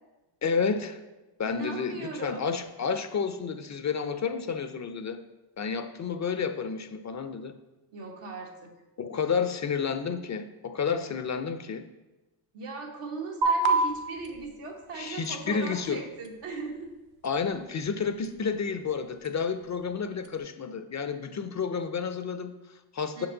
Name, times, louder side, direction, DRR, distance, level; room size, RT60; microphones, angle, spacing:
voice 1, 0.4-1.0 1.4-5.2 5.6-7.5 9.0-11.9 14.9-16.0 17.2-23.3, left 6 dB, 35° left, 9 dB, 0.4 m, -30 dB
voice 2, 1.4-2.5 7.9-8.7 12.5-16.9 23.2-23.3, right 4 dB, 85° right, 0 dB, 1.3 m, -38 dB
sound 1, 13.4-20.4, right 3 dB, 65° right, 0.8 m, -33 dB
5.7 x 4.5 x 3.8 m, 1.1 s
cardioid pair, 70°, 50 cm